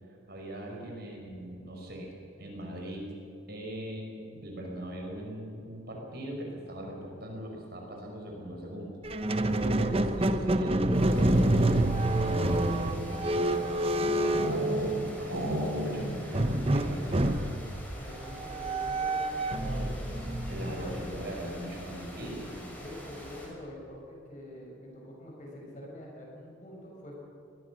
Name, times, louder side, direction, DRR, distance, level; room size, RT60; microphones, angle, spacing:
voice 1, 0.3-2.1 2.4-3.1 3.5-9.0 9.3-17.6 20.5-22.7, equal, 50° right, 0 dB, 5.6 m, -40 dB
Squeak, 9.0-15.4 16.3-21.5, right 1 dB, 30° right, 1.0 m, -28 dB
sound 1, 10.7-11.7 12.4-15.0 15.2-16.3 16.6-16.7 17.0-17.4, equal, 75° right, 5.6 m, -35 dB
sound 2, 10.9-23.5, equal, 10° left, 5.9 m, -46 dB
voice 2, 18.0-20.1 20.7-21.1 22.2-27.1, left 1 dB, 40° left, -2 dB, 7.1 m, -45 dB
23.0 x 20.5 x 6.4 m, 2.9 s
head